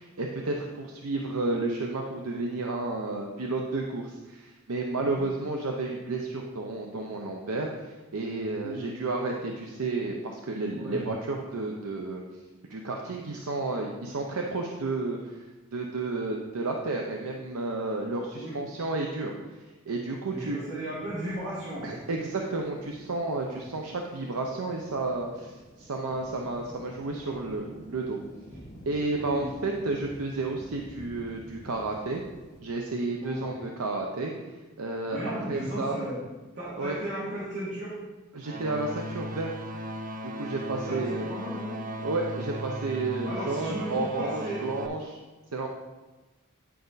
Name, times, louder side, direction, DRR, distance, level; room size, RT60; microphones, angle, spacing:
voice 1, 0.0-12.2 12.7-15.4 15.7-19.3 19.9-20.6 21.8-28.2 28.9-32.2 32.6-35.2 35.5-36.0 36.8-37.0 38.3-39.5 40.3-41.3 42.0-45.2 45.5-45.7, right 3 dB, 80° right, 1 dB, 0.7 m, -31 dB
voice 2, 20.3-22.0 23.5-23.6 29.1-29.5 33.2-33.6 35.0-36.2 36.5-38.0 40.7-41.8 43.2-44.6, right 1 dB, 60° right, -10 dB, 2.6 m, -35 dB
sound 1, 21.1-32.6, equal, 35° left, 1.9 m, -50 dB
sound 2, 38.4-44.9, equal, 40° right, 0.6 m, -37 dB
10.0 x 5.1 x 4.0 m, 1.2 s
head